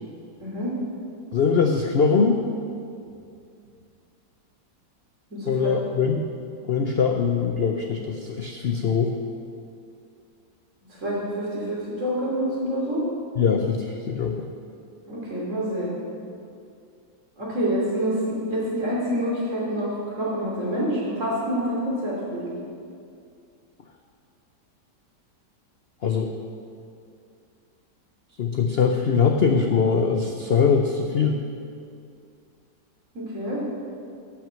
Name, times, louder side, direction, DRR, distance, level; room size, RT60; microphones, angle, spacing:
voice 1, 0.4-0.7 5.3-5.8 11.0-13.0 15.1-15.9 17.4-22.5 33.1-33.6, equal, 45° right, -5 dB, 3.3 m, -27 dB
voice 2, 1.3-2.4 5.5-6.3 6.7-9.1 13.4-14.5 26.0-26.3 28.4-31.4, left 5 dB, 70° left, 4 dB, 0.5 m, -22 dB
11.5 x 6.1 x 7.5 m, 2.4 s
omnidirectional pair, 1.8 m